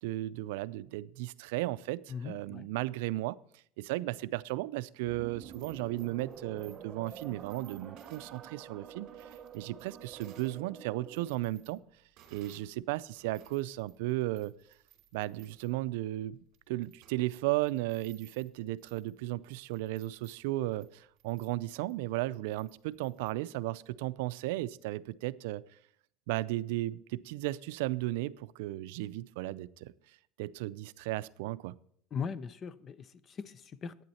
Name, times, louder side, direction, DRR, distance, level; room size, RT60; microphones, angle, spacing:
voice 1, 0.0-3.4 3.8-11.8 12.3-14.5 15.1-16.4 16.7-25.6 26.3-29.9 30.4-31.8, right 17 dB, 80° right, 0.4 m, -35 dB
voice 2, 2.1-2.7 32.1-34.0, left 6 dB, 25° left, 0.4 m, -40 dB
sound 1, 5.1-11.5, right 7 dB, 25° right, 0.7 m, -48 dB
sound 2, 5.4-10.6 11.0-12.7 13.1-23.3, right 9 dB, 45° right, 2.6 m, -62 dB
10.5 x 9.1 x 4.2 m
cardioid pair, 165°, 0 cm